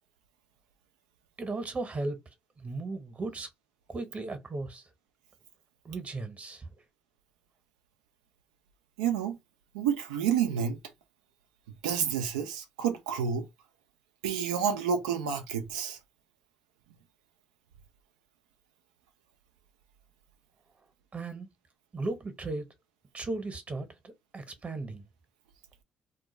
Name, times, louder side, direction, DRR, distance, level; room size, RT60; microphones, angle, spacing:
voice 1, 1.4-2.2 2.6-3.5 3.9-4.9 5.8-6.7 21.1-21.5 21.9-22.7 23.1-25.1, right 2 dB, 35° right, 0.9 m, -36 dB
voice 2, 9.0-9.4 9.7-10.8 11.8-13.5 14.2-16.0, right 8 dB, 90° right, 0.4 m, -29 dB
2.3 x 2.1 x 3.1 m
hypercardioid pair, 50°, 4 cm